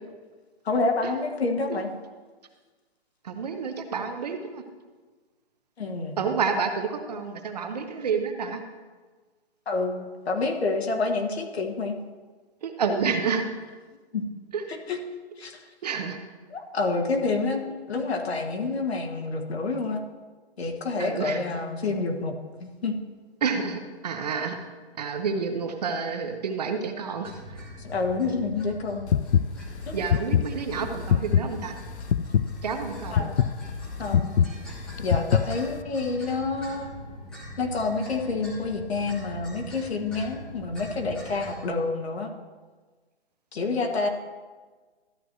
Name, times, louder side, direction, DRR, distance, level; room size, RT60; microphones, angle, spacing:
voice 1, 0.7-1.9 5.8-6.3 9.7-12.0 14.1-14.2 14.9-15.0 15.4-15.7 16.5-20.0 20.6-23.0 27.8-29.1 29.9-30.0 33.1-33.5 34.0-34.4 35.0-36.9 37.6-42.3 43.5-44.1, left 3 dB, 70° left, 2 dB, 1.8 m, -28 dB
voice 2, 3.2-4.6 6.2-8.6 12.6-13.5 14.5-14.6 15.8-16.2 21.0-21.4 23.4-24.6 25.0-27.6 29.9-31.7 32.6-33.3, right 5 dB, 40° right, 6 dB, 0.9 m, -29 dB
sound 1, 27.2-41.6, equal, 5° left, 0.7 m, -42 dB
sound 2, 29.1-35.8, left 8 dB, 90° left, 0.6 m, -24 dB
13.5 x 8.0 x 3.1 m, 1.4 s
hypercardioid pair, 165°, 33 cm